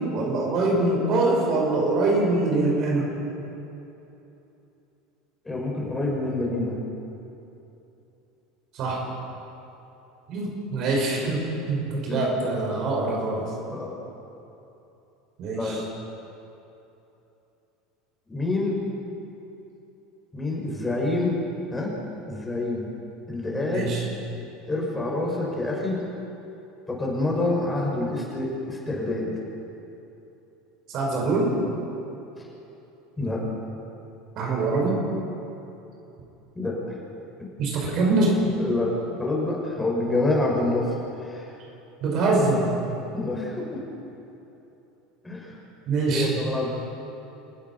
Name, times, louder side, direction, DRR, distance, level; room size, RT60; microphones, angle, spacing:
voice 1, 0.0-3.1 8.7-9.0 10.3-13.5 15.4-15.8 23.6-24.0 30.9-31.6 34.4-35.0 37.6-38.5 42.0-42.7 45.9-46.4, right 2 dB, 45° right, -1 dB, 5.8 m, -24 dB
voice 2, 5.4-6.8 10.4-10.5 11.2-11.3 12.1-12.3 13.7-13.9 15.5-15.8 18.3-18.8 20.3-21.4 21.7-21.9 22.3-22.9 23.3-24.0 24.7-26.0 26.9-29.3 32.4-32.5 33.2-33.4 36.5-37.0 38.6-41.6 43.1-43.8 45.2-45.6 46.1-46.7, left 2 dB, 15° left, -2 dB, 6.2 m, -27 dB
29.5 x 16.0 x 5.8 m, 2.9 s
figure-of-eight pair, 75°, 0 cm